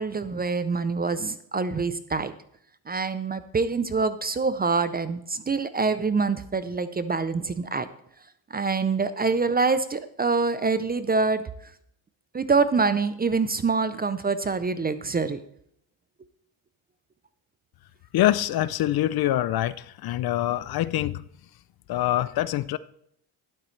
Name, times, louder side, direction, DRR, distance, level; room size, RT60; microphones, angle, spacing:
voice 1, 0.0-2.3 2.9-7.9 8.5-11.4 12.3-15.4, right 4 dB, 20° right, 0.5 m, -25 dB
voice 2, 18.1-21.2 21.9-22.8, left 13 dB, 50° left, 0.5 m, -25 dB
12.0 x 12.0 x 3.2 m
cardioid pair, 105°, 49 cm